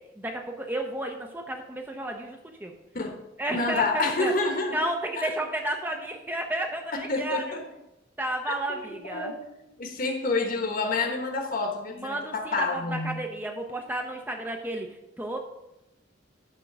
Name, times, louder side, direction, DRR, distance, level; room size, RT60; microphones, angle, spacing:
voice 1, 0.0-2.7 3.4-4.3 4.7-7.6 8.2-9.3 11.9-15.4, right 1 dB, 10° right, 2 dB, 0.7 m, -32 dB
voice 2, 3.5-4.9 5.2-5.3 6.9-7.6 8.5-9.3 9.6-13.2, left 3 dB, 45° left, 4 dB, 1.3 m, -29 dB
11.0 x 3.8 x 6.0 m, 0.88 s
head